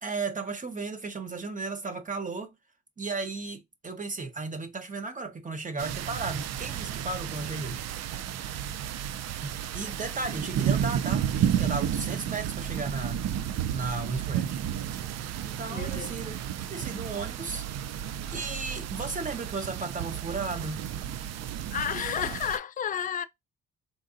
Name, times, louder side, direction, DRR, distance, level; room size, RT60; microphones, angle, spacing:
voice 1, 0.0-2.6 3.0-7.8 9.4-13.2 13.7-14.6 15.4-16.4 16.7-17.6 18.3-20.8, right 3 dB, 25° right, 0.9 m, -35 dB
sound 1, 5.8-22.6, right 10 dB, 60° right, 0.4 m, -32 dB
voice 2, 15.7-16.1 21.7-23.2, left 8 dB, 30° left, 0.4 m, -31 dB
3.9 x 2.6 x 2.5 m
cardioid pair, 90°, 30 cm